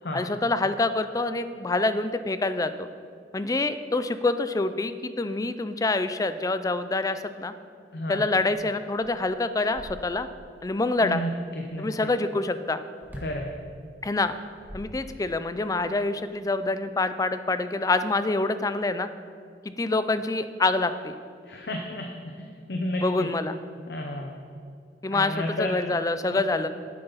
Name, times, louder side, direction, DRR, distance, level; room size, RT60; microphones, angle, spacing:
voice 1, 0.1-2.9 3.3-7.5 8.1-10.3 10.6-11.2 11.8-12.8 14.0-14.4 14.7-19.1 19.7-21.2 23.0-23.6 25.0-26.7, left 2 dB, 20° left, 11 dB, 0.4 m, -26 dB
voice 2, 7.9-8.2 11.0-12.1 13.2-13.5 21.5-23.3 23.9-24.4 25.1-25.7 26.3-26.4, left 1 dB, 65° left, 2 dB, 0.8 m, -32 dB
Floor Thud, 8.9-10.5 13.0-13.5 14.3-15.5, equal, 10° right, 1.1 m, -43 dB
11.0 x 9.1 x 4.0 m, 2.4 s
head